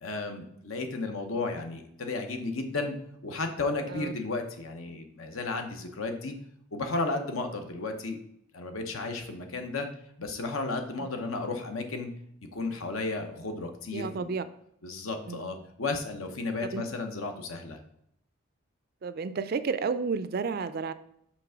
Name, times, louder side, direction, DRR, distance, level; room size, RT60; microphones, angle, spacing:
voice 1, 0.0-2.9 3.2-6.3 6.7-8.2 8.5-9.9 10.2-12.1 12.5-14.3 14.8-17.8, left 3 dB, 75° left, 5 dB, 0.9 m, -33 dB
voice 2, 13.9-14.4 15.3-15.5 16.7-16.8 19.0-20.9, right 5 dB, 45° right, 13 dB, 0.3 m, -31 dB
6.0 x 3.3 x 5.7 m, 0.71 s
head